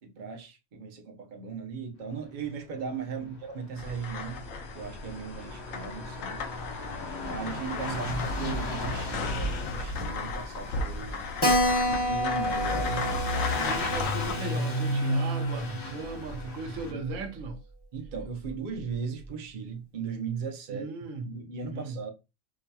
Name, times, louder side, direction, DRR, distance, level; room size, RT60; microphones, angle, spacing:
voice 1, 0.0-4.4 4.8-6.4 7.2-8.1 8.3-11.3 11.9-13.1 13.4-13.8 16.9-17.0 17.9-20.9 21.3-22.1, right 5 dB, 45° right, 0.8 m, -37 dB
Truck / Accelerating revving vroom, 3.3-3.4 3.5-16.9, left 1 dB, 60° left, 1.0 m, -34 dB
sound 1, 3.8-14.3, left 4 dB, 85° left, 1.1 m, -36 dB
voice 2, 7.7-8.2 13.4-17.6 20.7-21.3 21.7-22.0, right 3 dB, 85° right, 1.1 m, -37 dB
Keyboard (musical), 11.4-16.5 16.7-16.8 17.1-17.2 17.5-17.6 18.2-18.5, equal, 20° left, 0.8 m, -30 dB
4.8 x 2.8 x 2.2 m
omnidirectional pair, 1.3 m